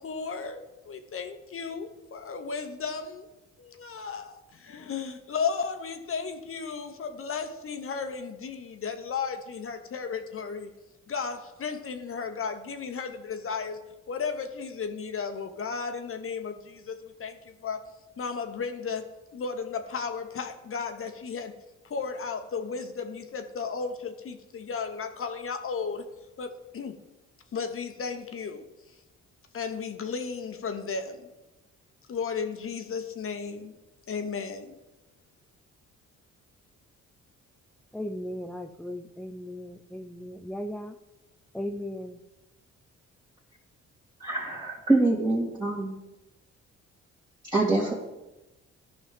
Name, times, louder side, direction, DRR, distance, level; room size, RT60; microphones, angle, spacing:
voice 1, 0.0-3.3 3.6-10.7 11.1-13.8 14.1-17.8 18.2-21.5 21.8-26.1 26.4-26.9 27.5-28.9 29.5-31.3 32.1-33.7 34.1-34.7, left 5 dB, 45° left, 7 dB, 1.1 m, -34 dB
voice 2, 37.9-40.9 41.5-42.2, left 1 dB, 5° left, 5 dB, 0.4 m, -37 dB
voice 3, 44.2-46.0 47.5-47.9, right 2 dB, 15° right, -7 dB, 2.0 m, -25 dB
14.0 x 5.4 x 3.7 m, 1.0 s
cardioid pair, 90°, 30 cm